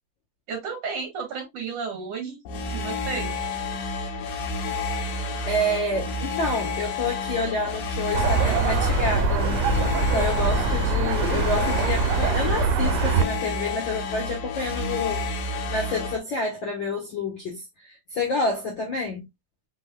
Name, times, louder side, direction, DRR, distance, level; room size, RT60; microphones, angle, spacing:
voice 1, 0.5-2.4 2.7-3.3, right 5 dB, 60° right, 2.0 m, -32 dB
sound 1, 2.5-16.2, left 3 dB, 85° left, 2.6 m, -30 dB
voice 2, 5.5-9.7 10.0-15.3 15.7-19.3, left 2 dB, 55° left, 1.3 m, -28 dB
sound 2, 8.1-13.2, right 4 dB, 75° right, 2.0 m, -23 dB
5.4 x 4.2 x 2.2 m
omnidirectional pair, 3.8 m